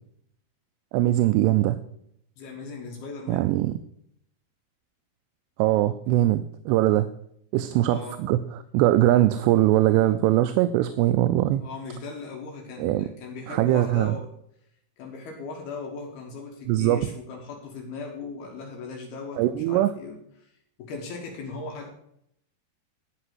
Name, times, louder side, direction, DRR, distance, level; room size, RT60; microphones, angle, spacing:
voice 1, 0.9-1.8 3.3-3.7 5.6-7.1 7.5-8.4 8.7-11.7 12.8-13.1 13.5-14.1 16.7-17.1 19.4-19.9, right 14 dB, 85° right, 11 dB, 2.7 m, -21 dB
voice 2, 2.4-3.5 7.9-8.2 11.6-14.3 15.0-21.9, left 4 dB, 70° left, 1 dB, 3.3 m, -38 dB
11.5 x 6.0 x 7.8 m, 0.71 s
omnidirectional pair, 4.9 m